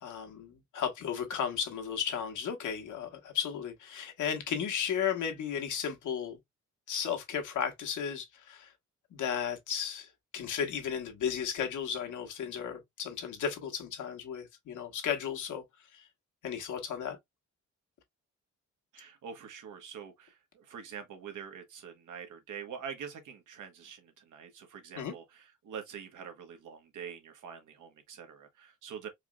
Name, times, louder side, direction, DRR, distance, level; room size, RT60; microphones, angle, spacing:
voice 1, 0.0-6.4 6.9-8.7 9.1-15.6 15.9-16.1 16.4-17.2 25.0-25.1, left 8 dB, 80° left, 1.5 m, -34 dB
voice 2, 18.9-29.1, right 7 dB, 90° right, 1.4 m, -45 dB
4.7 x 3.1 x 2.3 m
wide cardioid pair, 155°, 30 cm